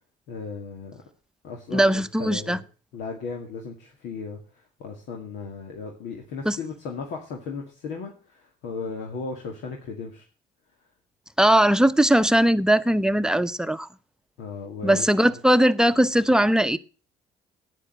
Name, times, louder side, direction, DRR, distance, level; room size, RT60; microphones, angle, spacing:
voice 1, 0.3-1.0 1.4-2.6 2.9-10.2 14.4-15.1, left 4 dB, 90° left, 2.2 m, -36 dB
voice 2, 1.7-2.6 6.5-6.6 11.4-13.9 14.8-16.8, right 1 dB, 5° right, 0.8 m, -19 dB
10.0 x 9.2 x 7.6 m
cardioid pair, 85°, 18 cm